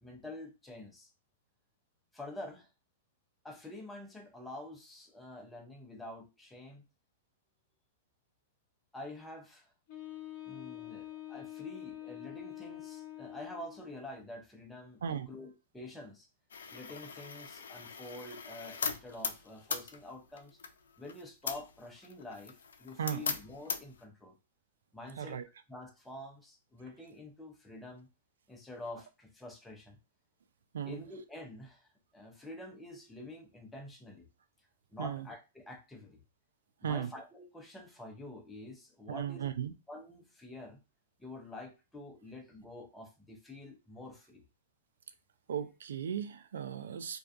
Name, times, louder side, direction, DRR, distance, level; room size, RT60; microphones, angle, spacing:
voice 1, 0.0-1.1 2.1-2.7 3.4-6.8 8.9-9.7 10.4-16.3 16.7-20.6 21.0-24.4 24.9-25.4 25.7-28.1 28.5-30.0 30.8-34.3 34.9-36.2 36.8-39.5 39.9-40.8 41.2-44.4, left 1 dB, 5° left, 0.5 m, -47 dB
Wind instrument woodwind instrument, 9.9-14.0, left 13 dB, 45° left, 0.6 m, -46 dB
sound 1, 16.5-24.0, left 6 dB, 85° left, 0.3 m, -40 dB
voice 2, 25.2-25.5 30.7-31.0 35.0-35.3 36.8-37.1 39.1-39.7 45.5-47.2, right 8 dB, 80° right, 0.3 m, -36 dB
2.3 x 2.3 x 2.5 m
hypercardioid pair, 130°, 0 cm